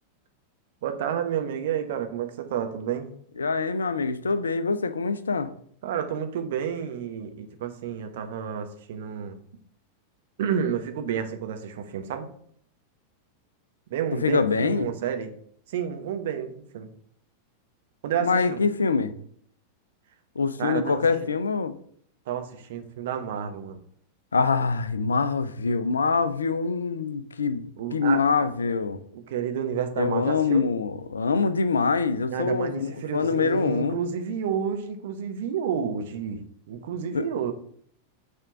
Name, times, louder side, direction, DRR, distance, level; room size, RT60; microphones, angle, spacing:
voice 1, 0.8-3.1 5.8-9.4 10.4-12.3 13.9-15.3 15.7-16.9 18.0-18.6 20.6-21.3 22.3-23.8 27.8-28.5 29.1-30.6 32.3-36.4 36.7-37.5, right 8 dB, 55° right, 0.9 m, -30 dB
voice 2, 3.4-5.5 14.1-14.9 18.2-19.1 20.4-21.8 24.3-29.0 30.0-34.0 37.1-37.3, left 4 dB, 75° left, 0.5 m, -24 dB
6.7 x 3.6 x 5.8 m
figure-of-eight pair, 90°, 0 cm